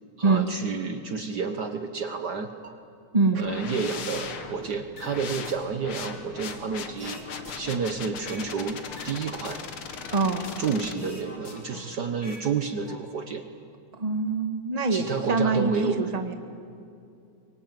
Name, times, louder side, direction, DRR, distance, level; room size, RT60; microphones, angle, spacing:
voice 1, 0.2-2.5 3.3-7.2 7.5-9.6 10.6-13.4 14.9-16.0, right 5 dB, 55° right, 7 dB, 1.6 m, -30 dB
sound 1, 2.5-2.7 3.3-3.7 4.3-4.9 5.4-5.5 6.3-6.5 7.0-7.1 7.5-7.6, right 5 dB, 35° right, 2.0 m, -45 dB
sound 2, 3.4-10.9, left 6 dB, 80° left, 2.5 m, -39 dB
sound 3, 5.0-5.6 6.0-8.5 8.9-10.7 11.0-12.5 12.7-13.0, left 2 dB, 55° left, 4.3 m, -45 dB
voice 2, 10.1-10.5 14.0-16.3, right 3 dB, 20° right, 6 dB, 1.6 m, -24 dB
24.5 x 23.5 x 9.2 m, 2.5 s
omnidirectional pair, 2.3 m